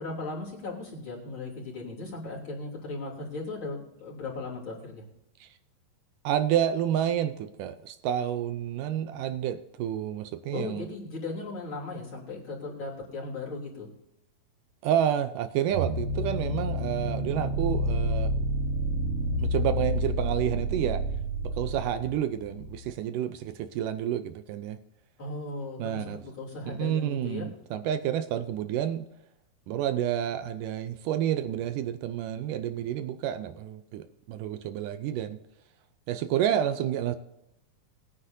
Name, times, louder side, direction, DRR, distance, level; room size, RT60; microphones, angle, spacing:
voice 1, 0.0-5.0 10.5-13.9 25.2-27.5, left 3 dB, 35° left, -4 dB, 3.8 m, -37 dB
voice 2, 6.2-10.9 14.8-18.5 19.4-21.0 21.4-24.8 25.8-26.2 26.7-29.1 29.7-35.4 36.1-37.2, right 10 dB, 80° right, 10 dB, 2.0 m, -29 dB
sound 1, 15.7-22.9, equal, 60° right, 1.7 m, -29 dB
20.5 x 9.7 x 2.7 m, 0.87 s
omnidirectional pair, 4.2 m